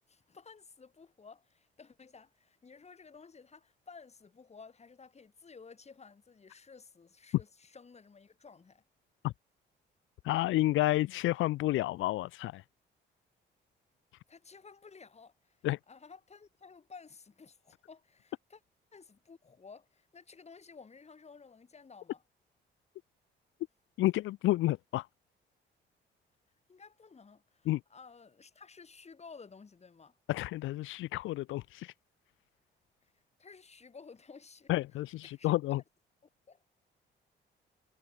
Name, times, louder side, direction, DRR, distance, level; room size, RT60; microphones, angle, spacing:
voice 1, 0.1-8.8 14.3-15.6 15.9-18.6 18.9-22.2 26.7-30.2 33.4-34.7 35.2-35.8 36.5-36.6, left 5 dB, 35° left, 5.0 m, -54 dB
voice 2, 10.2-12.6 15.6-15.8 24.0-25.1 27.7-27.8 30.3-31.9 34.7-35.8, left 16 dB, 80° left, 0.5 m, -30 dB
cardioid pair, 90°, 20 cm